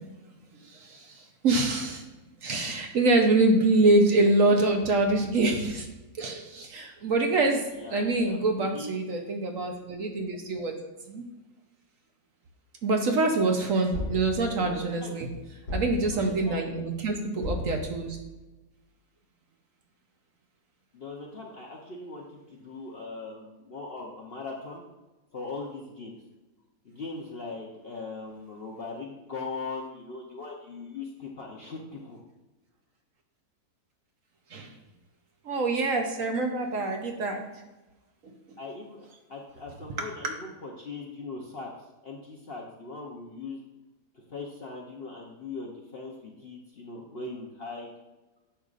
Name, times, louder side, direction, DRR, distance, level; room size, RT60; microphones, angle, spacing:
voice 1, 0.6-2.0 2.4-5.9 6.2-10.8 11.1-11.3 12.8-15.3 15.7-18.2 34.5-34.7 35.4-37.4 40.0-40.1, right 2 dB, 60° right, 3 dB, 1.1 m, -25 dB
voice 2, 7.7-8.9 14.5-15.2 16.1-16.7 20.9-22.2 22.5-24.8 25.3-26.2 26.8-32.2 38.6-41.7 42.0-43.6 44.3-47.9, left 3 dB, 50° left, -1 dB, 0.8 m, -40 dB
sound 1, 13.9-14.7 15.7-16.4 17.4-18.2, left 2 dB, 85° left, 2.5 m, -34 dB
10.0 x 6.5 x 2.5 m, 1.1 s
omnidirectional pair, 1.8 m